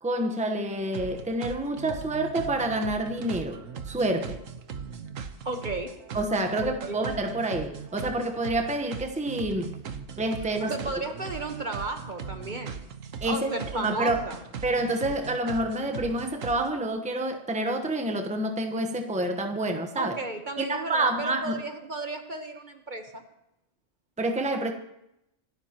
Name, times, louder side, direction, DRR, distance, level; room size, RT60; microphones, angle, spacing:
voice 1, 0.0-4.4 6.1-9.8 10.2-10.7 13.2-14.2 14.6-20.2 20.6-21.6 24.2-24.7, right 1 dB, 5° right, 1.0 m, -28 dB
sound 1, 0.8-16.7, right 6 dB, 90° right, 1.4 m, -39 dB
voice 2, 5.4-5.9 6.8-7.0 10.7-12.8 13.2-14.4 20.0-23.2, right 2 dB, 40° right, 1.3 m, -34 dB
26.5 x 12.5 x 3.0 m
omnidirectional pair, 1.3 m